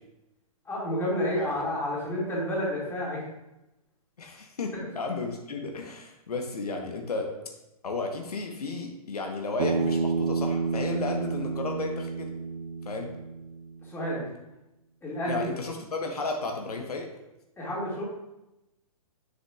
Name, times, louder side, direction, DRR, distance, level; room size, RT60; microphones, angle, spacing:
voice 1, 0.7-3.2 13.9-14.3 15.0-15.5 17.6-18.0, equal, 10° left, -6 dB, 2.2 m, -30 dB
voice 2, 4.2-7.3 7.8-12.3 12.8-13.1 15.3-17.1, left 3 dB, 85° left, 2 dB, 1.1 m, -33 dB
Bass guitar, 9.6-13.9, right 4 dB, 80° right, 0.6 m, -30 dB
7.3 x 6.6 x 2.4 m, 0.93 s
hypercardioid pair, 130°, 19 cm